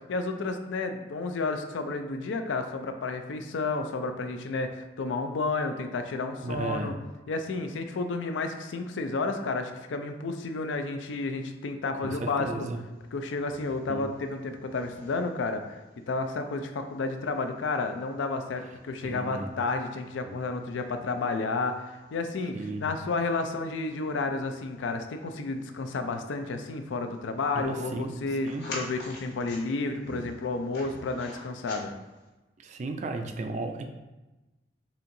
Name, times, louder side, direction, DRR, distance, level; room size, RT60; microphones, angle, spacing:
voice 1, 0.1-6.9 7.3-12.7 13.1-15.8 16.1-31.9, left 3 dB, 85° left, 6 dB, 0.4 m, -31 dB
voice 2, 6.4-6.9 12.0-12.8 13.9-14.1 19.0-19.5 20.2-20.4 22.5-22.9 27.5-28.6 32.6-33.9, right 2 dB, 40° right, 5 dB, 0.3 m, -35 dB
sound 1, 12.9-32.3, left 2 dB, 55° left, 1.2 m, -49 dB
4.3 x 3.7 x 2.6 m, 1.1 s
head